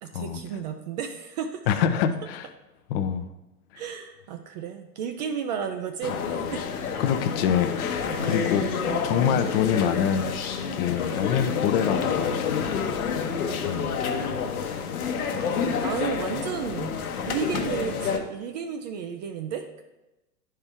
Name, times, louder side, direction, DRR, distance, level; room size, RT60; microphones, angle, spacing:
voice 1, 0.0-1.7 3.7-6.6 8.1-9.4 13.2-14.3 15.2-17.0 17.3-19.8, right 7 dB, 30° right, 6 dB, 0.4 m, -34 dB
voice 2, 1.7-2.5 2.9-3.3 3.7-3.8 7.0-8.7 9.0-10.3 10.7-12.6 13.6-13.9, left 8 dB, 40° left, 8 dB, 0.6 m, -25 dB
sound 1, 6.0-18.2, left 6 dB, 65° left, 1.0 m, -28 dB
10.5 x 4.5 x 3.5 m, 1.0 s
figure-of-eight pair, 95°, 46 cm